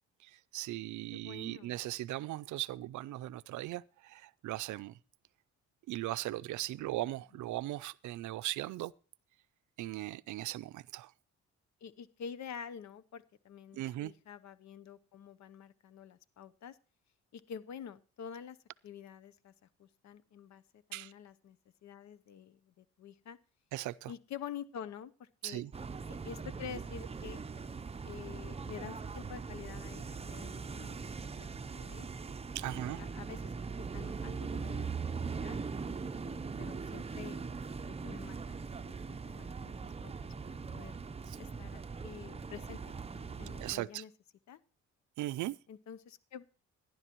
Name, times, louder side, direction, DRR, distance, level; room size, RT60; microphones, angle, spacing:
voice 1, 0.2-5.0 5.9-8.9 9.8-11.1 13.7-14.1 20.9-21.1 23.7-24.1 25.4-25.7 32.5-33.0 41.3-41.4 43.6-44.0 45.2-45.6, right 16 dB, 75° right, 0.5 m, -38 dB
voice 2, 1.1-1.7 6.8-7.0 11.8-16.8 17.3-18.6 18.8-19.5 19.8-23.4 24.1-25.6 26.1-27.4 28.0-31.5 31.7-32.1 32.7-33.5 33.9-34.9 35.3-35.6 36.2-37.4 37.7-38.6 38.8-41.0 41.4-42.8 43.1-44.1 44.5-44.6 45.7-46.4, left 8 dB, 65° left, 0.8 m, -48 dB
sound 1, 25.7-43.7, right 5 dB, 20° right, 0.6 m, -41 dB
18.0 x 10.5 x 3.0 m
cardioid pair, 90°, 30 cm